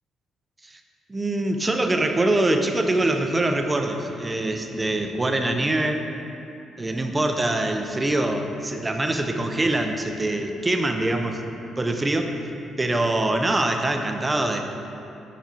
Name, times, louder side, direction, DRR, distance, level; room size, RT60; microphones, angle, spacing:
voice 1, 1.1-6.0 6.8-11.4 11.8-12.4 12.8-14.7, right 2 dB, 20° right, 5 dB, 0.5 m, -24 dB
5.7 x 5.0 x 4.4 m, 2.8 s
cardioid pair, 90°, 0 cm